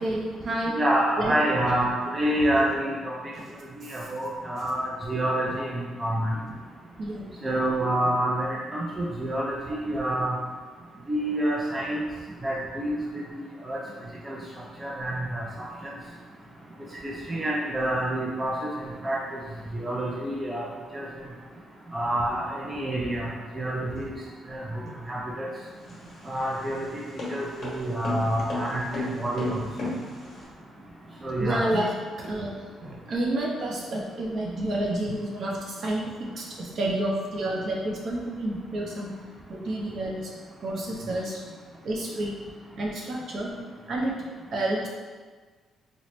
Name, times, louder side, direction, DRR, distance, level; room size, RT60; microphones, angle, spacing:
voice 1, 0.0-0.8 1.2-1.4 3.3-3.4 4.6-4.7 7.0-7.3 28.3-28.7 31.4-31.9 32.2-32.5 32.8-39.1 39.5-40.3 40.6-41.4 41.8-42.4 42.8-43.5 43.9-44.1 44.5-44.9, right 1 dB, 50° right, -3 dB, 0.7 m, -29 dB
voice 2, 0.7-3.1 3.8-6.3 7.4-10.4 11.1-12.0 12.4-13.0 13.6-13.8 14.2-14.4 14.8-15.4 15.8-15.9 17.0-18.7 19.0-19.4 19.7-20.7 20.9-21.1 21.9-24.1 24.5-24.8 25.1-25.5 26.3-27.0 27.3-29.6 31.2-31.7, right 1 dB, 15° right, -5 dB, 0.4 m, -27 dB
sound 1, 25.7-30.4, left 2 dB, 45° left, 1.2 m, -35 dB
4.2 x 2.1 x 3.0 m, 1.4 s
cardioid pair, 150°, 0 cm